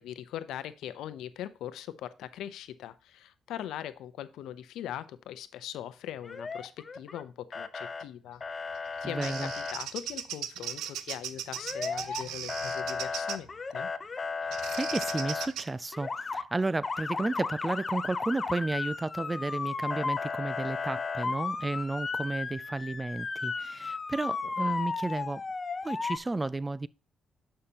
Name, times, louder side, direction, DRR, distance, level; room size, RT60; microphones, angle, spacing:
voice 1, 0.0-8.4 9.0-13.9, left 11 dB, 85° left, 0.7 m, -41 dB
Motor vehicle (road) / Siren, 6.2-7.2 7.5-8.0 8.4-9.7 11.6-12.2 12.5-15.5 15.9-16.4 16.8-26.2, left 4 dB, 30° left, 0.9 m, -34 dB
Bird vocalization bird call bird song, 8.7-13.5 14.5-15.7, right 10 dB, 85° right, 0.7 m, -38 dB
voice 2, 9.0-9.5 14.4-25.4 25.8-26.9, right 2 dB, 20° right, 0.3 m, -33 dB
11.0 x 5.7 x 2.9 m
cardioid pair, 90°, 0 cm